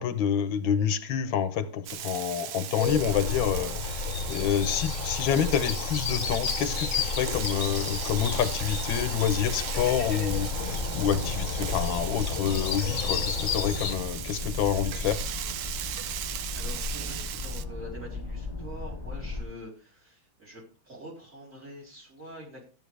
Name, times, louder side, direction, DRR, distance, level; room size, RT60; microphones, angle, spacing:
voice 1, 0.0-15.2, left 9 dB, 80° left, 1.5 m, -28 dB
Frying (food), 1.9-17.6, right 11 dB, 70° right, 1.0 m, -38 dB
sound 1, 2.8-14.0, left 5 dB, 50° left, 1.1 m, -32 dB
sound 2, 9.7-19.4, left 3 dB, 25° left, 0.6 m, -37 dB
voice 2, 16.5-22.6, right 1 dB, 40° right, 3.9 m, -45 dB
12.5 x 8.9 x 3.3 m
omnidirectional pair, 2.1 m